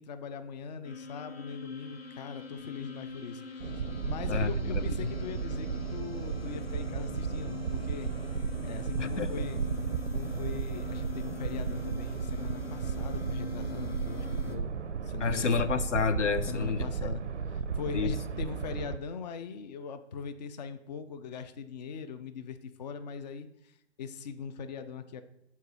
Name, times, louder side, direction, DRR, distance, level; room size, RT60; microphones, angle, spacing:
voice 1, 0.0-9.7 10.1-14.7 15.0-15.5 16.5-23.7 24.0-25.2, left 6 dB, 40° left, 0.5 m, -41 dB
sound 1, 0.8-14.6, left 4 dB, 60° left, 0.9 m, -44 dB
sound 2, 3.6-19.0, right 6 dB, 85° right, 0.5 m, -34 dB
voice 2, 4.3-5.0 9.0-9.3 15.2-16.9 17.9-18.1, left 5 dB, 85° left, 0.5 m, -29 dB
6.4 x 4.1 x 5.3 m
figure-of-eight pair, 125°, 35 cm